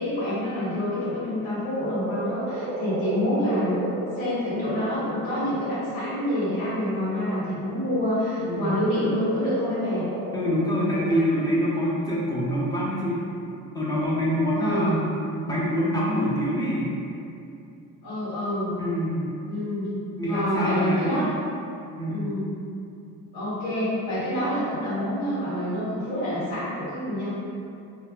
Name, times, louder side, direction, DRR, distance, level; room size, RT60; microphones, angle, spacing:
voice 1, 0.0-3.8 4.2-10.0 14.6-15.1 18.0-18.7 19.5-19.9 20.2-21.3 22.1-22.5 23.3-27.3, left 1 dB, 90° left, -11 dB, 1.4 m, -27 dB
Frog, 1.8-7.7 8.6-11.1, right 1 dB, 75° right, 0.6 m, -35 dB
voice 2, 8.4-8.8 10.3-13.2 13.7-15.1 15.4-16.9 18.8-19.2 20.2-21.2 22.0-22.3, equal, 10° left, -7 dB, 0.6 m, -25 dB
2.7 x 2.4 x 2.2 m, 2.5 s
cardioid pair, 90°, 36 cm